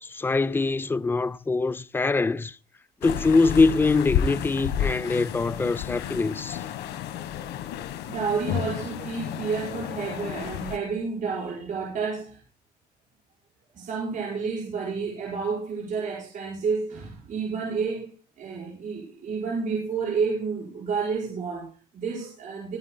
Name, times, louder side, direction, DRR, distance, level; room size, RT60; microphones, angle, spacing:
voice 1, 0.0-2.6 3.0-6.6, left 3 dB, 10° left, 0.5 m, -23 dB
sound 1, 3.0-10.8, left 9 dB, 85° left, 1.3 m, -31 dB
voice 2, 8.1-12.4 13.7-22.8, right 5 dB, 50° right, 5.3 m, -30 dB
24.5 x 9.4 x 2.2 m
cardioid pair, 110°, 17 cm